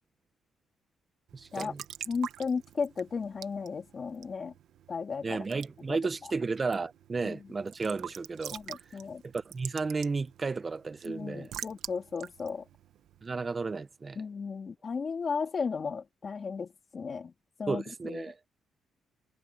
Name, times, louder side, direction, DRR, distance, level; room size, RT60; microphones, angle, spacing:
voice 1, 1.3-1.8 5.2-8.6 8.9-9.0 9.2-11.5 13.2-14.2 17.7-18.4, right 4 dB, 30° right, 0.7 m, -33 dB
Raindrop / Drip / Trickle dribble, 1.3-13.8, right 10 dB, 75° right, 1.3 m, -47 dB
voice 2, 2.1-4.5 4.9-5.4 5.9-6.0 7.2-7.4 8.5-9.2 11.0-12.6 14.2-17.3 17.6-18.2, left 5 dB, 40° left, 2.5 m, -35 dB
cardioid pair, 90°, 0 cm